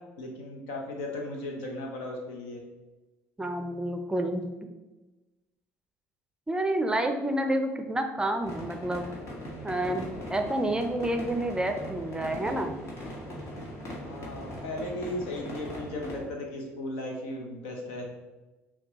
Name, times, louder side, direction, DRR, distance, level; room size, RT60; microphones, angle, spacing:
voice 1, 0.2-2.6 14.0-18.1, left 1 dB, 80° left, 1 dB, 0.9 m, -36 dB
voice 2, 3.4-4.5 6.5-9.1 9.6-12.7, right 1 dB, 15° right, 6 dB, 0.5 m, -29 dB
sound 1, 8.4-16.2, equal, 55° left, 1.5 m, -40 dB
5.9 x 2.3 x 2.9 m, 1.1 s
hypercardioid pair, 65°, 6 cm